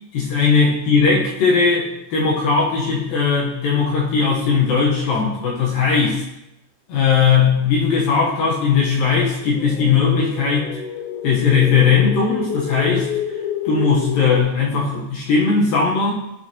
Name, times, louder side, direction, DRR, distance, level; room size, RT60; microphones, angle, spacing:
voice 1, 0.1-6.2 6.9-10.7 11.2-13.1 13.7-16.1, left 5 dB, 70° left, -3 dB, 2.2 m, -18 dB
sound 1, 9.4-14.4, left 8 dB, 85° left, 3.0 m, -29 dB
12.0 x 4.8 x 2.9 m, 0.85 s
omnidirectional pair, 5.4 m